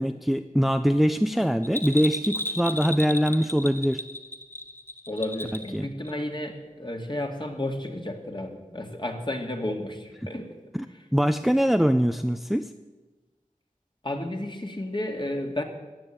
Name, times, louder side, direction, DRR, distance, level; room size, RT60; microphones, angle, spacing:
voice 1, 0.0-4.0 5.5-5.9 10.7-12.7, equal, ahead, 9 dB, 0.6 m, -23 dB
Bell, 1.6-5.8 6.1-6.2, left 1 dB, 15° left, 1.4 m, -33 dB
voice 2, 5.1-10.5 14.0-15.6, left 1 dB, 35° left, 3 dB, 2.3 m, -32 dB
15.0 x 9.6 x 8.8 m, 1.2 s
wide cardioid pair, 45°, 14 cm